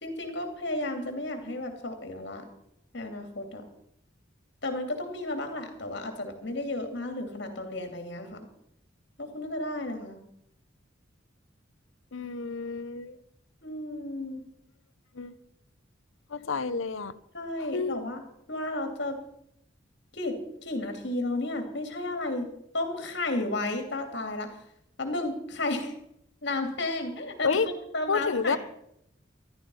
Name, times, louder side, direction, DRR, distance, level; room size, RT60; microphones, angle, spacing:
voice 1, 0.0-2.5 2.9-3.6 4.6-8.5 9.2-10.2 13.6-14.4 17.3-18.2 18.5-19.2 20.1-24.5 25.0-25.9 26.4-27.5 27.9-28.6, left 2 dB, 60° left, 2.7 m, -33 dB
voice 2, 12.1-13.2 15.2-15.3 16.3-17.1 17.7-17.9 27.4-27.7 28.1-28.6, left 5 dB, 80° left, 0.7 m, -29 dB
13.5 x 12.0 x 5.5 m
head